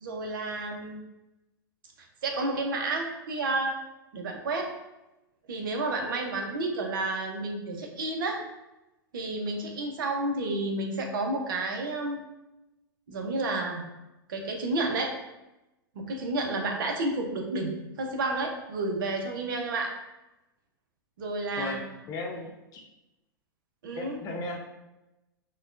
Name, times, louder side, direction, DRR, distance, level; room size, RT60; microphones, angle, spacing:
voice 1, 0.0-1.0 2.0-3.8 4.1-4.7 5.5-8.4 9.1-12.2 13.1-13.8 14.3-15.1 15.9-19.9 21.2-21.8 23.8-24.2, right 2 dB, 65° right, 2 dB, 0.8 m, -31 dB
voice 2, 21.6-22.8 23.9-24.6, left 2 dB, 35° left, 2 dB, 0.7 m, -36 dB
5.5 x 2.3 x 2.5 m, 0.96 s
figure-of-eight pair, 100°, 12 cm